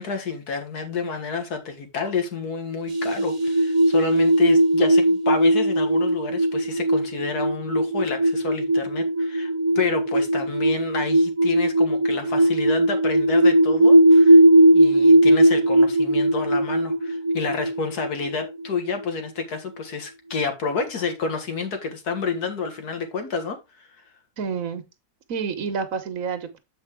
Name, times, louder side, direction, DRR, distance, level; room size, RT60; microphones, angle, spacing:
voice 1, 0.0-14.4 14.7-23.9, left 5 dB, 85° left, 2.1 m, -29 dB
sound 1, 2.9-19.2, right 1 dB, 30° right, 0.7 m, -18 dB
voice 2, 24.4-24.8 25.3-26.6, right 6 dB, 65° right, 1.5 m, -29 dB
7.9 x 5.3 x 3.6 m
omnidirectional pair, 1.6 m